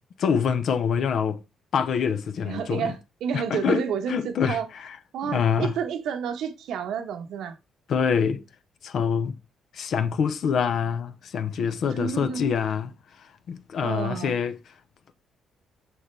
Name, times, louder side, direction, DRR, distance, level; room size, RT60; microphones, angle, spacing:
voice 1, 0.2-1.4 1.7-2.9 3.3-5.0 5.2-5.7 7.9-8.4 8.8-9.3 9.7-12.9 13.2-14.6, left 7 dB, 65° left, 0.8 m, -25 dB
voice 2, 2.4-4.7 5.1-7.6 11.8-12.5 13.8-14.4, right 7 dB, 75° right, 1.1 m, -30 dB
6.4 x 5.6 x 3.3 m
cardioid pair, 90°, 0 cm